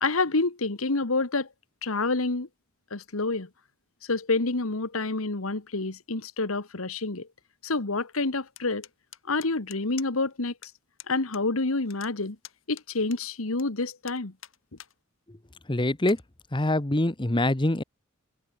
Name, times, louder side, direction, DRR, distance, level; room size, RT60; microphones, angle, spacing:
voice 1, 0.0-1.5 1.8-2.5 2.9-3.5 4.1-7.3 7.6-8.9 9.3-10.7 11.1-12.4 12.7-14.3, left 3 dB, 90° left, 1.6 m, -28 dB
sound 1, 8.6-10.3 10.6-10.7 11.0-11.4 11.7-13.6 14.0-14.9 15.4-15.5 16.0-16.2, left 12 dB, 75° left, 4.5 m, -47 dB
voice 2, 15.7-16.2 16.5-17.8, left 1 dB, 25° left, 1.1 m, -24 dB
head